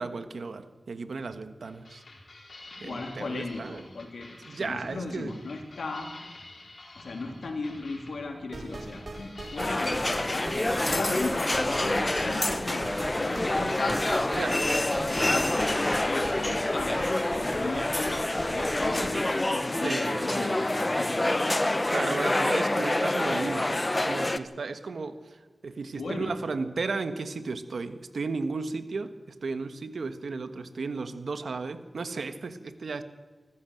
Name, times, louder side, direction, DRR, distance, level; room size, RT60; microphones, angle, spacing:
voice 1, 0.0-2.0 2.8-3.8 4.5-5.3 14.3-14.7 19.8-20.6 21.9-25.2 25.6-33.0, right 4 dB, 85° right, 10 dB, 1.5 m, -34 dB
sound 1, 1.2-17.3, left 2 dB, 65° left, 4.9 m, -50 dB
voice 2, 2.6-6.1 7.0-10.0 10.3-14.0 14.8-21.5 23.3-23.5 25.9-26.3, left 3 dB, 90° left, 3 dB, 3.4 m, -36 dB
sound 2, 8.5-19.1, right 2 dB, 55° right, 3.6 m, -40 dB
sound 3, 9.6-24.4, left 1 dB, 25° left, 1.0 m, -27 dB
25.0 x 14.0 x 7.9 m, 1.4 s
wide cardioid pair, 60°, 0 cm